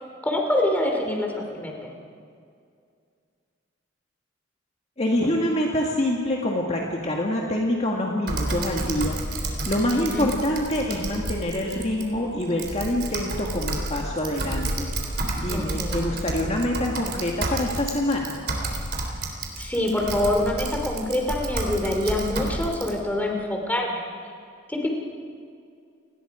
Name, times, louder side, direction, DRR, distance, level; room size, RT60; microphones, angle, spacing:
voice 1, 0.2-1.9 9.9-10.3 15.5-16.1 19.6-24.0 24.7-24.9, left 1 dB, 10° left, 1 dB, 3.2 m, -25 dB
voice 2, 5.0-9.2 9.4-14.9 15.4-18.4, left 1 dB, 35° left, -1 dB, 1.9 m, -26 dB
Typing, 8.3-22.9, right 2 dB, 55° right, 3.6 m, -30 dB
30.0 x 19.5 x 5.1 m, 2.3 s
head